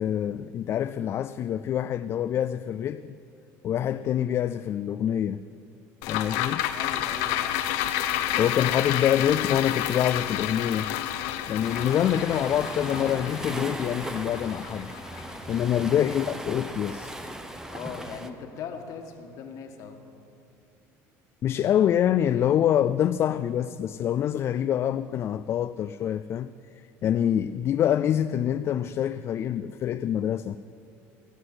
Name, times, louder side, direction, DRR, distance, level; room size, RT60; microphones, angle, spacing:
voice 1, 0.0-3.1 3.6-5.4 6.1-6.7 8.4-10.9 11.5-14.9 15.5-17.1 21.4-26.5 27.0-30.6, left 10 dB, 40° left, 0.3 m, -26 dB
sound 1, 6.0-16.5 16.9-17.0, left 11 dB, 90° left, 0.8 m, -30 dB
voice 2, 6.7-7.6 15.7-15.9 17.7-20.0, left 6 dB, 60° left, 1.5 m, -40 dB
Waves surf, 11.6-18.3, right 1 dB, 10° right, 0.8 m, -37 dB
17.5 x 8.0 x 7.9 m
cardioid pair, 125°, 7 cm